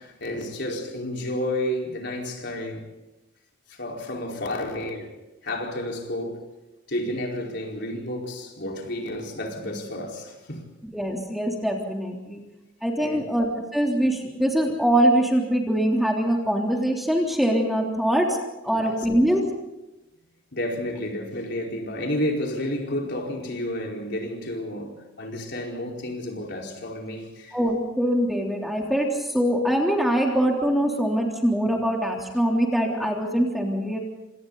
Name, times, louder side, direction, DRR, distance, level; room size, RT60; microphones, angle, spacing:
voice 1, 0.0-2.9 3.7-6.5 6.9-10.7 13.0-13.3 18.7-19.1 20.5-27.6, left 1 dB, 55° left, 4.7 m, -31 dB
voice 2, 10.9-12.4 12.8-18.4 18.6-19.4 27.5-34.0, right 1 dB, ahead, 3.4 m, -23 dB
28.5 x 27.0 x 4.1 m
head